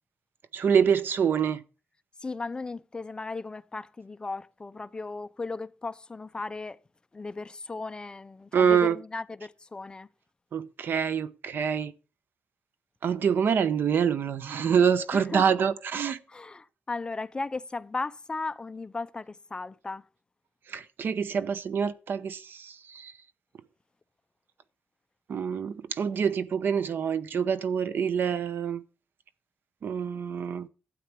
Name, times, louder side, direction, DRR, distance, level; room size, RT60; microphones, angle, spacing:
voice 1, 0.5-1.6 8.5-9.0 10.5-11.9 13.0-16.2 20.7-23.1 25.3-28.8 29.8-30.7, right 7 dB, 65° right, 0.8 m, -26 dB
voice 2, 2.2-6.8 7.1-10.1 15.1-15.6 16.3-20.0, left 3 dB, 25° left, 0.5 m, -36 dB
12.5 x 8.4 x 4.5 m
wide cardioid pair, 130°, 4 cm